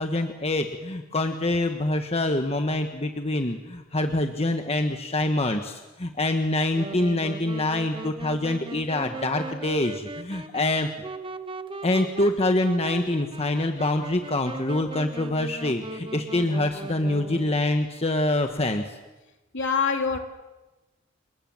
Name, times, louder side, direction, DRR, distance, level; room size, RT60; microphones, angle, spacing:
voice 1, 0.0-10.9 11.8-19.0, left 2 dB, 30° left, 6 dB, 1.3 m, -25 dB
Wind instrument woodwind instrument, 6.7-17.7, right 2 dB, 25° right, 1.1 m, -38 dB
voice 2, 19.5-20.2, left 5 dB, 60° left, 4 dB, 3.2 m, -24 dB
29.0 x 19.5 x 7.8 m, 1.1 s
head